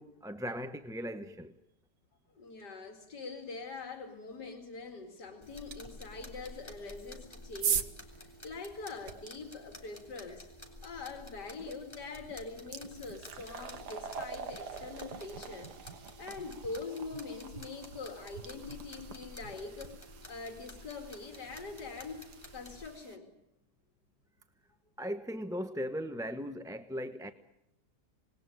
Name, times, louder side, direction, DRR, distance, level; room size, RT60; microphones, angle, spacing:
voice 1, 0.0-1.5 25.0-27.3, equal, 5° right, 0.8 m, -38 dB
voice 2, 2.4-7.9 8.2-10.5 10.8-15.7 16.2-20.0 20.3-22.2 22.5-23.3, left 4 dB, 85° left, 3.0 m, -43 dB
sound 1, 5.4-22.9, left 1 dB, 15° left, 3.3 m, -52 dB
sound 2, 5.7-5.8 6.9-9.3 11.6-11.7 12.2-23.2, right 7 dB, 90° right, 1.8 m, -41 dB
26.5 x 20.0 x 10.0 m
omnidirectional pair, 1.7 m